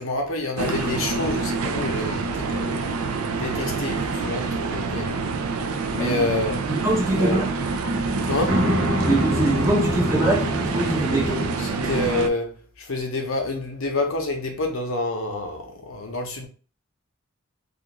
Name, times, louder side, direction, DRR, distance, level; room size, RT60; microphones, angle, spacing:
voice 1, 0.0-2.8 3.4-5.2 5.9-6.5 7.2-7.4 8.3-8.6 11.8-12.5 12.9-16.5, left 2 dB, 70° left, 0.7 m, -28 dB
sound 1, 0.6-12.3, right 4 dB, 85° right, 0.4 m, -27 dB
voice 2, 6.0-6.3 6.7-7.5 9.1-10.5 10.7-11.4, right 1 dB, 15° right, 0.7 m, -23 dB
sound 2, 7.9-11.5, equal, 55° right, 0.8 m, -26 dB
2.4 x 2.4 x 2.9 m
head